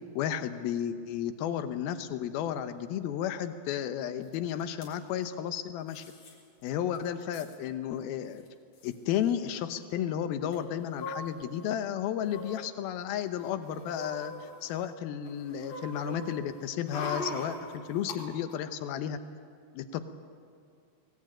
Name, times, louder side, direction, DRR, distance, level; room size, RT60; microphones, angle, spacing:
voice 1, 0.2-6.0 6.6-8.4 8.8-19.2 19.7-20.1, left 9 dB, 75° left, 10 dB, 2.3 m, -33 dB
sound 1, 4.3-4.4 4.6-4.9 5.9-6.3 6.7-6.8 7.0-7.6 8.4-8.5 8.7-8.9 10.5-11.7 12.2-12.6 13.2-14.9 15.2-18.2 18.5-18.6, left 2 dB, 45° left, 5.2 m, -41 dB
24.0 x 19.5 x 8.9 m, 2.2 s
omnidirectional pair, 5.5 m